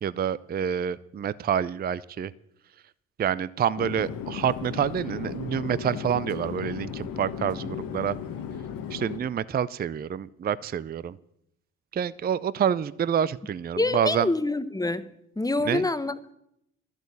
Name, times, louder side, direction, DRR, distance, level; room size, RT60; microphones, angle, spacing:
voice 1, 0.0-2.3 3.2-8.2 8.9-11.2 11.9-14.3 15.6-15.9, right 8 dB, 30° right, 19 dB, 0.4 m, -27 dB
Chatter / Fixed-wing aircraft airplane, 3.8-9.2, left 8 dB, 80° left, 1.4 m, -35 dB
voice 2, 13.8-15.1 15.4-16.3, left 2 dB, 10° left, 13 dB, 0.9 m, -26 dB
12.0 x 8.2 x 8.4 m, 0.76 s
cardioid pair, 75°, 34 cm